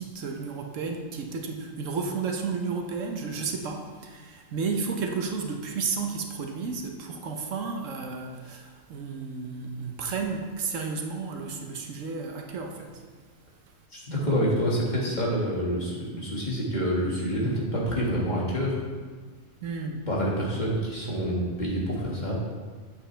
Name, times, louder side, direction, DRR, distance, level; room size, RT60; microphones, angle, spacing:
voice 1, 0.0-13.0 19.6-20.1, right 5 dB, 70° right, 2 dB, 1.2 m, -32 dB
voice 2, 13.9-18.8 20.1-22.4, equal, 35° left, -5 dB, 1.9 m, -27 dB
8.2 x 8.1 x 3.3 m, 1.5 s
omnidirectional pair, 1.4 m